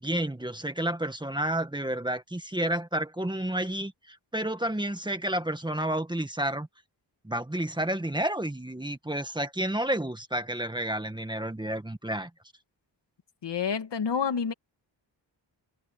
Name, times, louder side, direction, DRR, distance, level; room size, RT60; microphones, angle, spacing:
voice 1, 0.0-6.7 7.2-12.3, right 1 dB, 10° right, 1.7 m, -30 dB
voice 2, 13.4-14.5, left 6 dB, 65° left, 2.2 m, -28 dB
wide cardioid pair, 110°, 45 cm